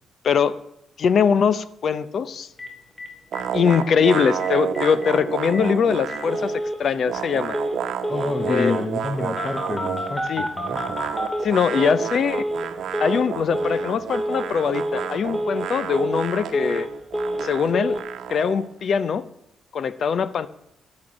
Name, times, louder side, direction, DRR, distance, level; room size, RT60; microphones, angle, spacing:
voice 1, 0.2-0.6 1.0-2.5 3.5-7.6 8.5-8.7 10.3-10.5 11.4-12.4 13.0-16.9 17.4-18.0 18.3-19.2 19.7-20.5, left 6 dB, 60° left, 16 dB, 0.6 m, -22 dB
Telephone, 2.6-2.7 3.0-3.1 3.3-3.4 3.7-4.1 4.4-4.5 4.7-5.1 5.5-5.6 6.1-6.8 7.5-7.8 8.0-8.8 9.4-12.1 12.3-12.7 12.9-13.3 13.5-13.9 14.1-14.5 14.7-15.1 15.3-15.7 15.9-16.9 17.1-17.5 17.7-18.0, equal, 10° left, 2.4 m, -28 dB
sound 1, 3.3-6.6 6.9-10.2 10.6-18.7, right 8 dB, 75° right, 0.9 m, -31 dB
voice 2, 8.1-11.0, left 3 dB, 35° left, 7 dB, 1.0 m, -28 dB
10.5 x 8.4 x 6.3 m, 0.81 s
cardioid pair, 80°, 0 cm